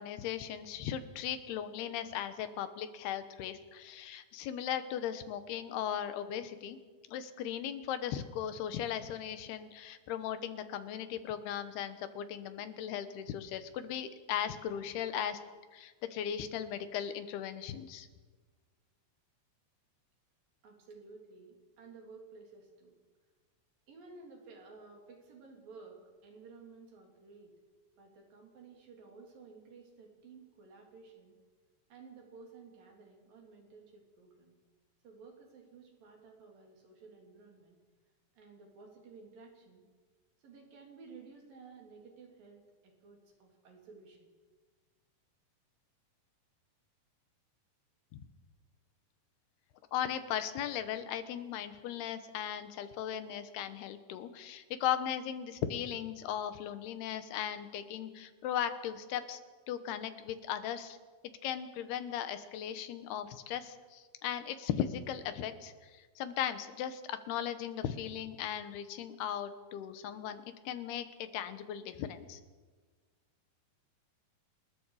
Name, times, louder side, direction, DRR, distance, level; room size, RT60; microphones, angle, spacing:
voice 1, 0.0-6.8 7.1-15.4 15.7-18.1 48.1-48.2 49.9-59.4 59.7-61.0 61.4-72.4, left 10 dB, 90° left, 10 dB, 3.2 m, -37 dB
voice 2, 20.6-22.9 23.9-27.5 28.0-31.4 31.9-34.6 35.0-37.8 38.3-39.8 40.4-44.3, right 4 dB, 65° right, 1 dB, 5.0 m, -54 dB
28.5 x 21.0 x 4.9 m, 1.4 s
omnidirectional pair, 4.5 m